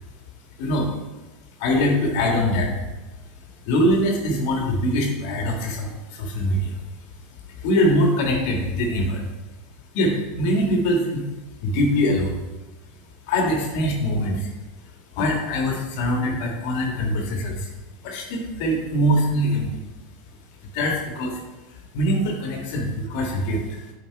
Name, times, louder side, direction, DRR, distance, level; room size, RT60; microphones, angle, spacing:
voice 1, 0.6-1.0 1.6-2.9 3.6-6.8 7.5-9.2 9.9-11.3 11.6-12.4 13.3-14.5 15.1-17.7 18.0-19.8 20.7-21.4 21.7-23.9, equal, 55° left, 1 dB, 1.6 m, -23 dB
9.4 x 4.1 x 4.6 m, 1.1 s
figure-of-eight pair, 85°, 0 cm